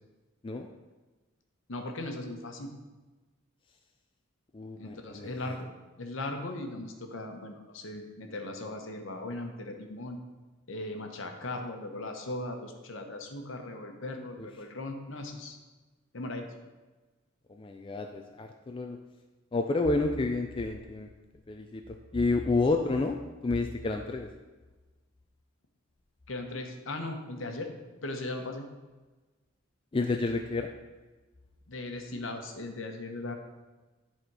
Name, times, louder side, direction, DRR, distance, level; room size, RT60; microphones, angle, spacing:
voice 1, 1.7-2.7 4.8-5.7 6.0-10.2 10.7-15.6 16.1-16.5 26.3-27.7 28.0-28.7 31.7-33.3, left 2 dB, 65° left, 4 dB, 1.0 m, -38 dB
voice 2, 4.5-5.3 14.4-14.5 17.5-19.0 19.5-21.1 21.5-24.3 29.9-30.7, left 3 dB, 25° left, 4 dB, 0.3 m, -30 dB
10.5 x 4.3 x 4.7 m, 1.2 s
head